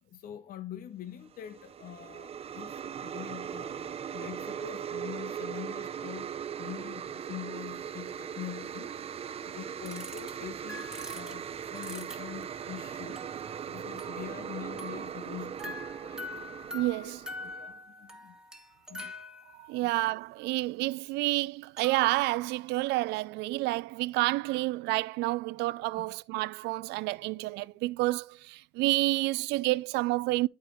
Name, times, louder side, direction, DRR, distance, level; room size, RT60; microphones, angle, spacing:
voice 1, 0.0-6.3 6.6-8.9 9.4-13.2 13.7-16.3 17.0-18.4 18.9-19.2 19.8-19.9 26.0-26.2, left 11 dB, 60° left, 0.8 m, -44 dB
sound 1, 1.3-17.7, right 8 dB, 35° right, 0.6 m, -39 dB
sound 2, 7.7-7.8 8.1-8.2 9.9-10.3 10.7-12.6 13.1-14.5 14.8-19.9 21.3-21.4 21.8-22.5, left 1 dB, 5° right, 1.9 m, -45 dB
voice 2, 16.7-17.2 19.5-30.5, right 20 dB, 90° right, 0.4 m, -29 dB
12.5 x 4.7 x 3.1 m
cardioid pair, 110°, 17 cm